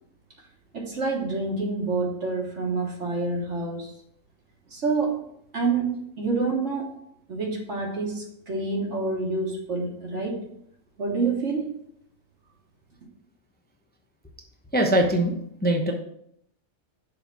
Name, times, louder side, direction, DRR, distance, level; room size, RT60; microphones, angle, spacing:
voice 1, 0.7-3.9 4.7-5.2 5.5-6.9 7.3-10.4 11.0-11.7, right 3 dB, 55° right, -1 dB, 1.6 m, -27 dB
voice 2, 14.7-15.3 15.6-15.9, right 1 dB, 10° left, 2 dB, 0.5 m, -21 dB
6.7 x 3.7 x 6.0 m, 0.71 s
omnidirectional pair, 1.4 m